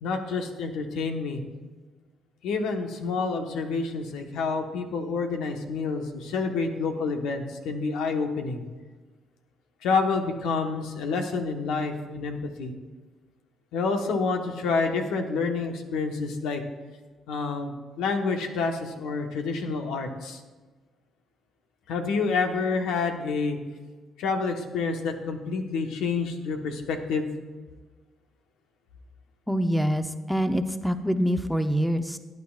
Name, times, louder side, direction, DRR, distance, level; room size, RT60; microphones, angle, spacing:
voice 1, 0.0-1.4 2.4-8.6 9.8-12.7 13.7-16.6 17.3-20.4 21.9-23.6 24.2-27.3, left 4 dB, 85° left, 4 dB, 1.2 m, -28 dB
voice 2, 29.5-32.2, equal, ahead, 8 dB, 0.7 m, -25 dB
17.5 x 9.3 x 2.4 m, 1.3 s
cardioid pair, 80°, 0 cm